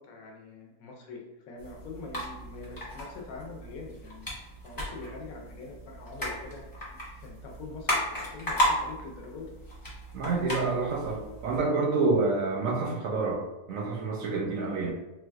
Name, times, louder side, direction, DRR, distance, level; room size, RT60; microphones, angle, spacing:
voice 1, 0.0-4.3 4.6-6.6 6.9-9.5, left 4 dB, 65° left, 0 dB, 1.0 m, -44 dB
sound 1, 1.6-11.6, equal, 30° left, 0.4 m, -35 dB
voice 2, 10.1-13.4 13.7-14.9, right 3 dB, 70° right, -1 dB, 0.8 m, -28 dB
3.9 x 2.3 x 2.3 m, 1.0 s
omnidirectional pair, 1.8 m